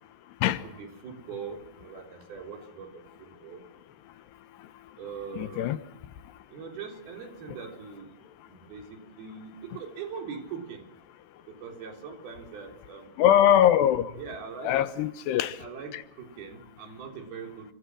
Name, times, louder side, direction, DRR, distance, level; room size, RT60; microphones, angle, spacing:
voice 1, 0.6-3.6 5.0-5.9 6.5-8.2 8.5-10.9 11.5-13.1 14.2-14.7 15.6-17.7, right 6 dB, 60° right, 5.5 m, -41 dB
voice 2, 5.3-5.8 13.2-14.1 14.6-15.6 15.9-16.0, left 11 dB, 75° left, 3.1 m, -22 dB
29.5 x 25.5 x 6.2 m
omnidirectional pair, 5.0 m